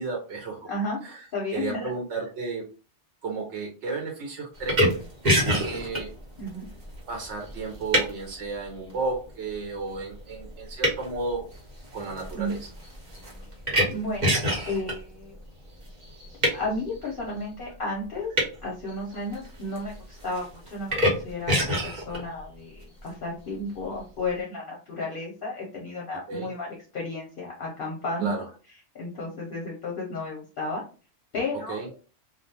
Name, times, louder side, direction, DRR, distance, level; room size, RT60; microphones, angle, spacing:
voice 1, 0.0-0.7 1.0-1.3 1.5-2.6 3.2-4.8 5.2-6.1 7.1-11.5 11.9-12.7 26.3-26.5 28.2-28.4 31.5-31.9, right 4 dB, 85° right, 1 dB, 0.9 m, -33 dB
voice 2, 0.7-1.0 1.3-1.9 6.4-6.7 12.3-12.6 13.9-15.4 16.5-18.3 18.6-26.7 26.9-28.3 28.9-30.8 31.3-31.8, left 2 dB, 55° left, -3 dB, 0.8 m, -33 dB
sound 1, 4.6-8.3 8.9-9.3 9.9-10.2 10.4-14.9 15.9-16.6 18.4-18.5 18.9-19.9 20.2-21.1 21.5-22.2, equal, 45° right, 1.0 m, -25 dB
2.3 x 2.2 x 2.7 m, 0.36 s
omnidirectional pair, 1.2 m